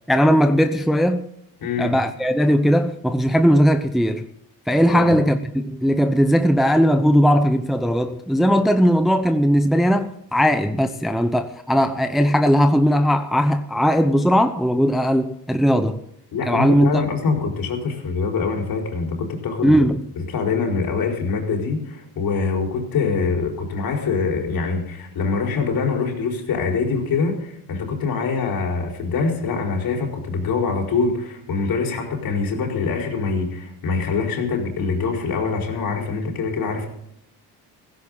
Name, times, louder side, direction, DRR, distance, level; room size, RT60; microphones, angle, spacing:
voice 1, 0.1-1.3 1.8-4.3 4.7-16.0 16.4-17.0 19.6-20.0, equal, ahead, 0.7 m, -18 dB
voice 2, 1.6-2.0 4.9-5.2 16.3-19.8 20.2-36.9, left 4 dB, 55° left, 4.7 m, -24 dB
16.0 x 15.5 x 4.0 m
cardioid pair, 105°, 43 cm